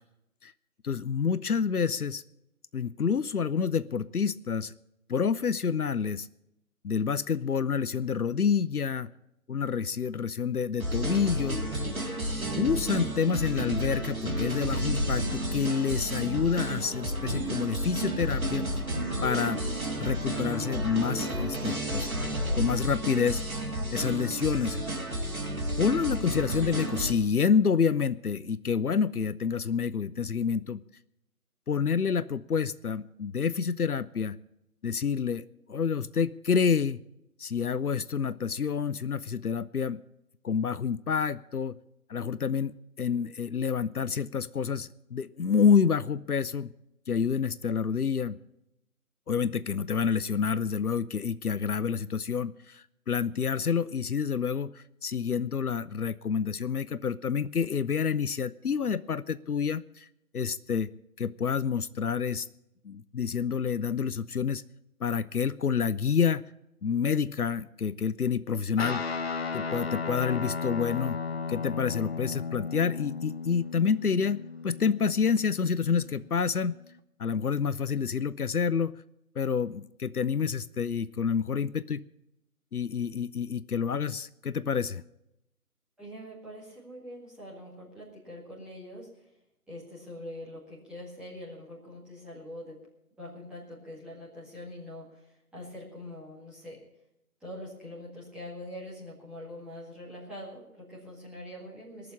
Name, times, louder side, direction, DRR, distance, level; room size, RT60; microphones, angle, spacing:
voice 1, 0.8-2.2 2.7-4.7 5.1-6.3 6.8-9.1 9.5-11.6 12.6-18.7 19.2-19.6 20.0-22.1 22.6-23.4 23.9-24.8 25.8-30.8 31.7-34.4 34.8-37.0 37.4-40.0 40.4-41.8 42.1-46.7 47.1-48.4 49.3-60.1 60.3-60.9 61.2-62.5 62.8-64.6 65.0-66.5 66.8-69.0 69.5-71.2 71.5-76.8 77.2-79.0 79.4-82.1 82.7-85.0, left 6 dB, 75° left, 16 dB, 0.7 m, -28 dB
sound 1, 10.8-27.1, right 1 dB, 70° right, 3.8 m, -31 dB
Guitar, 68.8-76.4, left 5 dB, 45° left, 1.1 m, -35 dB
voice 2, 86.0-89.1 89.7-92.8 93.2-96.8 97.4-102.1, left 1 dB, ahead, -9 dB, 2.0 m, -44 dB
19.5 x 6.8 x 8.6 m, 0.84 s
figure-of-eight pair, 150°, 45 cm